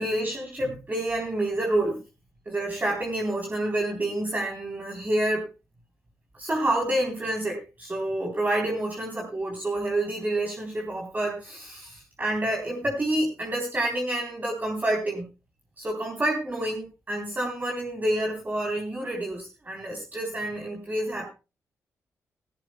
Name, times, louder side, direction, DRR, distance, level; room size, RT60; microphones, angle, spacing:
voice 1, 0.0-2.0 2.5-5.5 6.3-15.3 15.8-21.3, right 1 dB, 30° right, 0 dB, 3.7 m, -28 dB
16.5 x 16.0 x 2.3 m, 0.29 s
cardioid pair, 65°, 6 cm